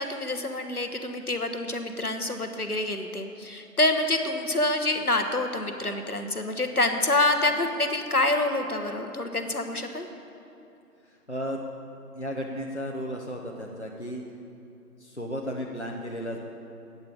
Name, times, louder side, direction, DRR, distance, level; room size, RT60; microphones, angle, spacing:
voice 1, 0.0-10.1, left 2 dB, 65° left, 6 dB, 1.2 m, -27 dB
voice 2, 11.0-11.6 12.1-14.2 15.0-16.4, equal, 45° left, -1 dB, 0.9 m, -34 dB
9.1 x 8.8 x 8.4 m, 2.7 s
figure-of-eight pair, 180°, 47 cm